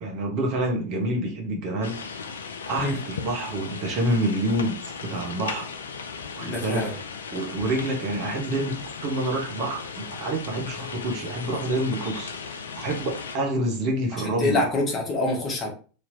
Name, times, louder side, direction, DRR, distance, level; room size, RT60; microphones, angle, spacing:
voice 1, 0.0-2.0 2.7-5.7 6.4-6.9 7.3-14.6, right 1 dB, 45° right, 1 dB, 1.0 m, -27 dB
sound 1, 1.8-13.4, left 5 dB, 70° left, 0.4 m, -37 dB
voice 2, 6.4-7.0 14.2-15.7, left 2 dB, 30° left, 0 dB, 1.3 m, -26 dB
3.3 x 2.8 x 2.7 m, 0.37 s
figure-of-eight pair, 85°, 0 cm